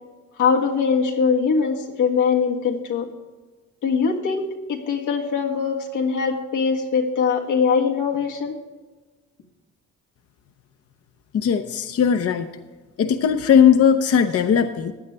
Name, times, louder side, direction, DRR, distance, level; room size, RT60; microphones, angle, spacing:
voice 1, 0.4-3.1 3.8-4.4 4.7-8.5, left 5 dB, 85° left, 0 dB, 1.7 m, -22 dB
voice 2, 11.3-12.5 13.0-14.9, left 7 dB, 50° left, 7 dB, 0.7 m, -18 dB
15.5 x 9.5 x 3.3 m, 1.3 s
cardioid pair, 90°, 30 cm